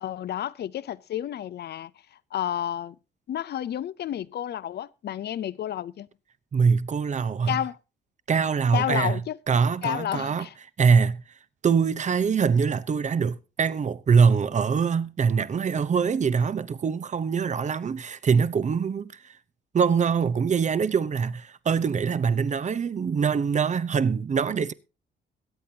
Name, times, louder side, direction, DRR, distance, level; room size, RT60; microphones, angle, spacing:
voice 1, 0.0-1.9 2.3-3.0 3.3-6.1 7.5-7.8 8.7-9.4 9.8-10.5, left 11 dB, 55° left, 0.6 m, -30 dB
voice 2, 6.5-7.6 8.3-9.2 9.5-10.5 10.8-11.2 11.6-19.4 19.7-24.7, right 6 dB, 35° right, 0.8 m, -23 dB
22.0 x 8.6 x 2.8 m
cardioid pair, 90°, 20 cm